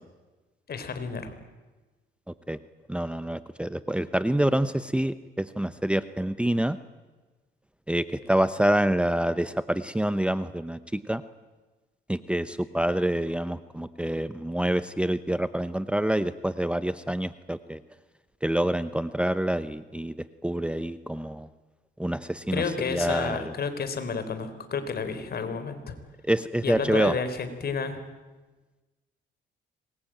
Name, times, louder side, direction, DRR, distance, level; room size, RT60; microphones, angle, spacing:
voice 1, 0.7-1.3 22.5-26.0 26.6-28.0, left 5 dB, 50° left, 10 dB, 3.9 m, -31 dB
voice 2, 2.9-6.8 7.9-11.2 12.1-17.8 18.4-20.1 20.4-21.5 22.0-22.6 22.9-23.4 26.3-27.1, right 1 dB, 5° right, 13 dB, 0.9 m, -27 dB
26.0 x 22.0 x 9.0 m, 1.2 s
cardioid pair, 90°, 20 cm